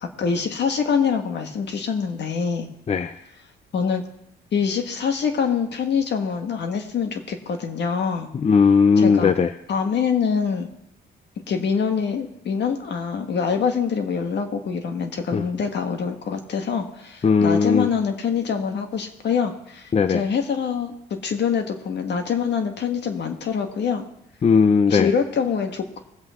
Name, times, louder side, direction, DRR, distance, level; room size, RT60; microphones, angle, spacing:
voice 1, 0.0-2.7 3.7-4.0 4.5-8.3 9.0-9.3 9.7-10.7 11.5-24.0 24.9-26.0, left 6 dB, 60° left, 5 dB, 1.7 m, -25 dB
voice 2, 8.4-9.5 15.3-15.4 17.2-17.9 19.9-20.2 24.4-25.1, left 5 dB, 35° left, 10 dB, 0.6 m, -17 dB
21.0 x 7.8 x 3.7 m, 0.80 s
cardioid pair, 90°, 20 cm